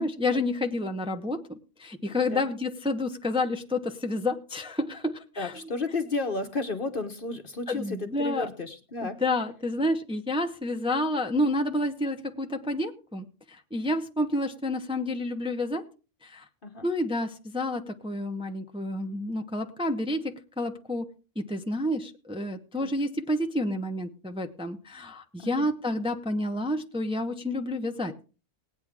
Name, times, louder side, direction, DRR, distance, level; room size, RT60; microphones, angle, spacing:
voice 1, 0.0-5.5 7.7-8.5 9.0-13.2 13.7-15.8 16.2-16.4 16.8-21.1 21.4-28.1, left 1 dB, 5° right, 4 dB, 0.8 m, -29 dB
voice 2, 5.4-9.2 16.6-16.9 22.8-22.9 25.4-25.7, left 3 dB, 45° left, 8 dB, 1.1 m, -33 dB
19.0 x 9.2 x 3.6 m, 0.35 s
omnidirectional pair, 1.4 m